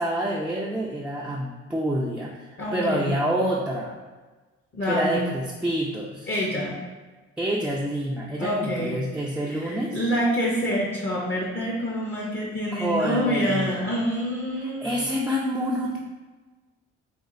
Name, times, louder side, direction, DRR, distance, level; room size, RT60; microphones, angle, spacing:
voice 1, 0.0-4.0 4.8-6.3 7.4-10.0 12.7-13.7 14.5-16.0, right 1 dB, 5° right, -4 dB, 0.3 m, -27 dB
voice 2, 2.6-3.1 4.7-5.2 6.3-6.8 8.4-9.0 9.5-15.1, equal, 40° left, -4 dB, 0.7 m, -27 dB
4.2 x 2.4 x 2.5 m, 1.3 s
cardioid pair, 90°, 30 cm